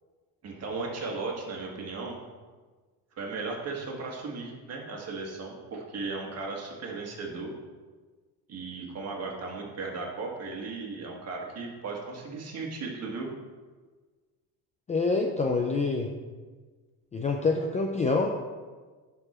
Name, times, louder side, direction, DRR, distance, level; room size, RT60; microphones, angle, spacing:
voice 1, 0.4-2.2 3.2-7.5 8.5-13.3, right 3 dB, 35° right, 0 dB, 1.6 m, -36 dB
voice 2, 14.9-16.1 17.1-18.3, left 3 dB, 20° left, 2 dB, 0.4 m, -26 dB
11.5 x 4.6 x 4.3 m, 1.4 s
cardioid pair, 150°, 41 cm